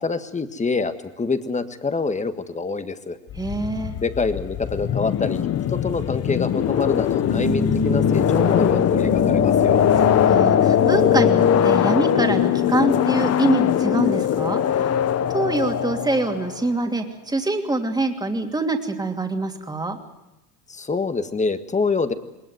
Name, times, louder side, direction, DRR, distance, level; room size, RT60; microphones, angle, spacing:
voice 1, 0.0-3.2 4.0-5.4 5.7-9.8 20.7-22.1, left 4 dB, 15° left, 10 dB, 1.6 m, -25 dB
sound 1, 3.3-16.7, left 10 dB, 35° left, 1.1 m, -21 dB
voice 2, 3.3-3.9 10.2-14.6 15.3-20.0, right 2 dB, 10° right, 4 dB, 2.8 m, -24 dB
sound 2, 7.1-11.9, left 2 dB, 85° left, 4.2 m, -26 dB
20.5 x 19.5 x 9.4 m, 0.94 s
supercardioid pair, 100°, 44 cm